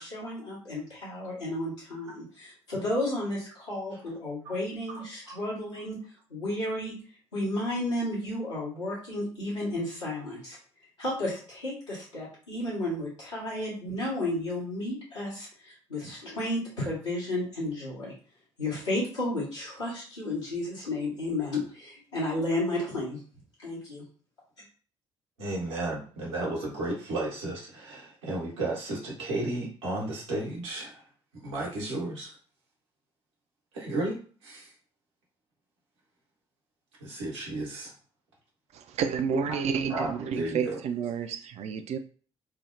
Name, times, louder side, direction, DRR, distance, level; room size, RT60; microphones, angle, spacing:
voice 1, 0.0-6.0 6.3-6.9 7.3-10.6 11.0-18.1 18.6-23.2 23.6-24.0, left 1 dB, 85° left, -8 dB, 1.2 m, -32 dB
voice 2, 25.4-31.0 31.3-32.3 33.7-34.7 37.0-37.9 39.3-39.6 39.9-40.8, right 2 dB, 80° right, -4 dB, 1.0 m, -33 dB
voice 3, 38.7-42.0, right 7 dB, 50° right, 8 dB, 0.4 m, -30 dB
3.2 x 2.0 x 2.5 m, 0.41 s
figure-of-eight pair, 45°, 15 cm